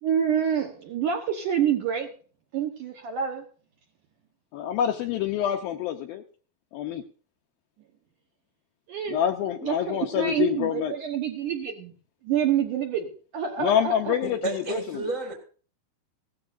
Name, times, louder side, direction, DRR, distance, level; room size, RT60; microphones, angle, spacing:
voice 1, 0.0-2.1 2.5-3.4 8.9-9.2 9.6-11.9 12.2-14.2, right 8 dB, 65° right, 2.1 m, -27 dB
voice 2, 4.5-6.2 6.7-7.0 9.1-10.9 13.6-14.8, left 10 dB, 80° left, 2.2 m, -26 dB
voice 3, 14.2-15.3, right 2 dB, 40° left, 1.1 m, -30 dB
17.5 x 13.5 x 2.6 m
omnidirectional pair, 5.0 m